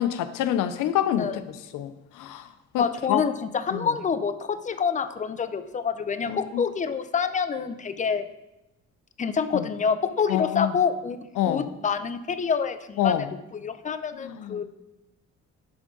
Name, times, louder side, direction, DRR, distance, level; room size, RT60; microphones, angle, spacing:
voice 1, 0.0-1.4 1.7-2.5 2.7-3.2 3.7-3.9 6.3-6.6 9.5-9.6 10.3-10.7 11.4-11.7 13.0-13.3 14.2-14.6, left 11 dB, 85° left, 12 dB, 0.6 m, -26 dB
voice 2, 2.8-8.2 9.2-11.2 11.5-13.3 13.5-14.6, left 6 dB, 25° left, 11 dB, 0.5 m, -27 dB
10.5 x 3.7 x 3.7 m, 0.94 s
cardioid pair, 90°, 30 cm